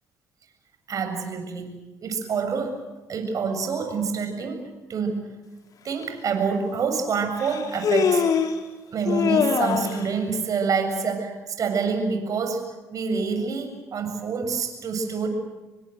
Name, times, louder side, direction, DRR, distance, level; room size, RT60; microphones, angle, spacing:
voice 1, 0.9-2.8 3.1-4.6 4.9-5.3 5.8-8.2 8.9-12.6 12.9-15.3, right 5 dB, 55° right, 6 dB, 7.3 m, -27 dB
Human voice, 6.0-6.1 7.4-8.6 9.1-10.1, left 6 dB, 60° left, 3.7 m, -23 dB
28.0 x 24.0 x 7.9 m, 1.2 s
supercardioid pair, 60°, 7 cm